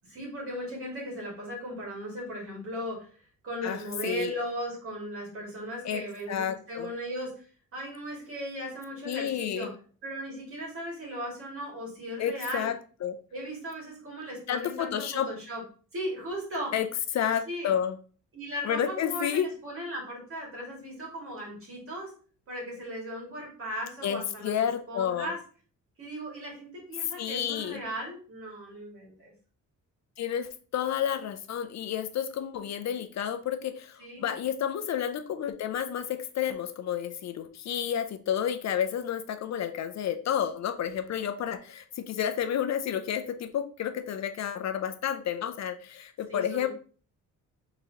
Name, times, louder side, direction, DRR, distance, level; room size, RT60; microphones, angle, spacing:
voice 1, 0.1-3.1 3.4-7.3 7.7-9.7 10.0-12.7 13.3-15.6 15.9-16.7 17.5-17.7 18.3-22.1 22.5-25.4 26.0-29.3 34.0-34.4 46.3-46.7, equal, 45° right, -2 dB, 2.2 m, -37 dB
voice 2, 6.3-6.9 9.0-9.7 12.2-12.7 13.0-13.2 14.5-15.3 16.7-16.9 17.1-18.0 18.6-19.5 24.0-25.3 27.2-27.8 30.2-46.7, left 9 dB, 55° left, 9 dB, 0.5 m, -30 dB
4.6 x 3.8 x 2.8 m, 0.40 s
cardioid pair, 145°, 32 cm